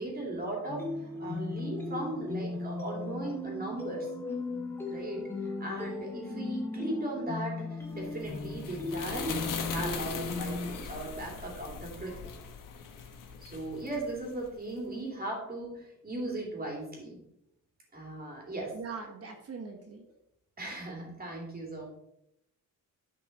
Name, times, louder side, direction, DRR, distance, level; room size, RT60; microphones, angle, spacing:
voice 1, 0.0-4.1 4.8-12.3 13.4-17.2 17.9-18.7 20.6-21.9, right 1 dB, 30° right, -1 dB, 2.9 m, -38 dB
sound 1, 0.7-10.7, left 3 dB, 5° left, 1.6 m, -37 dB
sound 2, 8.0-14.6, left 6 dB, 75° left, 1.3 m, -40 dB
voice 2, 18.7-20.1, right 5 dB, 45° right, 4 dB, 1.2 m, -41 dB
10.0 x 5.4 x 4.1 m, 0.81 s
cardioid pair, 130°, 33 cm